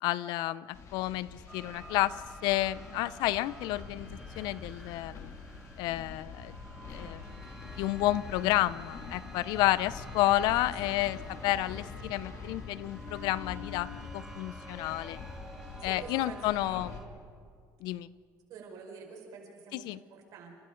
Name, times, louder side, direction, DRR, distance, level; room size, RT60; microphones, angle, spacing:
voice 1, 0.0-4.1 4.4-5.3 5.8-6.6 6.9-15.2 15.8-16.9 17.8-18.1 19.7-20.0, left 15 dB, 80° left, 18 dB, 0.5 m, -31 dB
sound 1, 0.7-17.0, left 4 dB, 45° left, 2.5 m, -45 dB
sound 2, 1.5-17.1, right 2 dB, 5° right, 1.7 m, -51 dB
voice 2, 15.8-16.9 18.5-20.5, right 5 dB, 60° right, 1 dB, 5.3 m, -47 dB
29.5 x 28.5 x 3.9 m, 2.2 s
cardioid pair, 145°, 7 cm